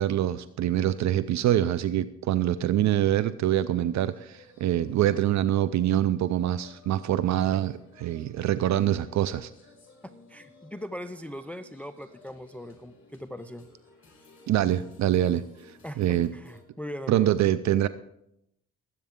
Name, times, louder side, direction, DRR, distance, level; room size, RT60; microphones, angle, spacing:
voice 1, 0.0-9.5 14.5-16.3 17.1-17.9, right 12 dB, 65° right, 14 dB, 0.5 m, -25 dB
sound 1, 3.8-16.6, left 3 dB, 45° left, 5.2 m, -55 dB
voice 2, 10.3-13.7 15.8-17.3, equal, 5° left, 11 dB, 0.5 m, -40 dB
19.5 x 8.5 x 3.6 m, 0.79 s
cardioid pair, 90°, 30 cm